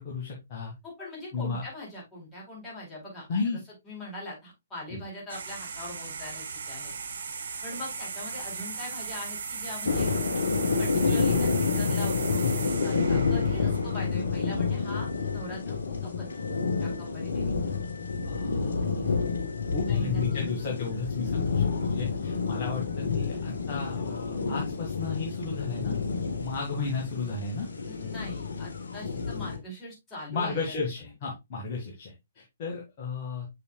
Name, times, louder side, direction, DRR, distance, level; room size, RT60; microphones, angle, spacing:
voice 1, 0.0-0.7 1.3-1.6 3.3-3.6 4.9-5.0 18.2-19.1 19.7-26.0 26.4-27.7 30.3-33.5, left 4 dB, 35° left, -3 dB, 2.1 m, -33 dB
voice 2, 0.8-3.2 3.8-6.9 7.6-10.1 10.8-16.4 16.8-17.5 19.9-20.2 27.8-31.1, left 1 dB, 10° left, -5 dB, 4.6 m, -42 dB
sound 1, 5.3-14.5, right 5 dB, 60° right, 1.1 m, -37 dB
sound 2, 9.8-29.6, left 5 dB, 65° left, 1.4 m, -29 dB
6.9 x 6.6 x 2.4 m, 0.20 s
figure-of-eight pair, 125°, 0 cm